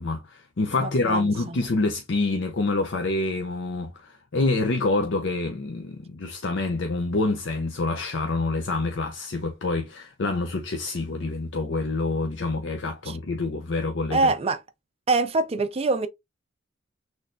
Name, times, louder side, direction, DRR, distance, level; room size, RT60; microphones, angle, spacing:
voice 1, 0.0-14.2, left 3 dB, 65° left, 0.6 m, -27 dB
voice 2, 0.8-1.6 13.1-13.2 14.1-14.6 15.1-16.1, right 3 dB, 30° right, 0.4 m, -24 dB
6.2 x 3.2 x 2.6 m
head